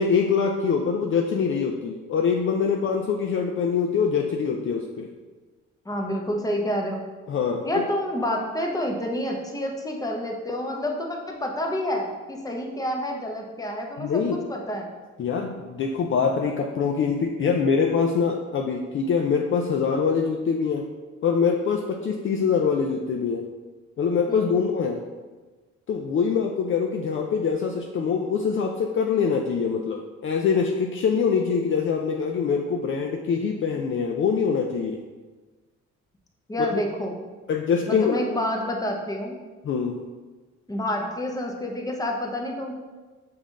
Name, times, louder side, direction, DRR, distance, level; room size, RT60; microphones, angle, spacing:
voice 1, 0.0-5.1 7.3-7.8 14.0-14.4 15.2-20.9 21.2-23.4 24.0-25.0 25.9-35.0 36.7-36.8 37.5-38.2 39.6-40.0, left 6 dB, 45° left, 1 dB, 0.4 m, -24 dB
voice 2, 5.9-7.0 7.6-14.9 24.3-24.5 36.5-37.1 37.9-39.3 40.7-42.7, equal, 10° left, 1 dB, 0.7 m, -28 dB
5.4 x 2.6 x 3.6 m, 1.3 s
cardioid pair, 90°, 30 cm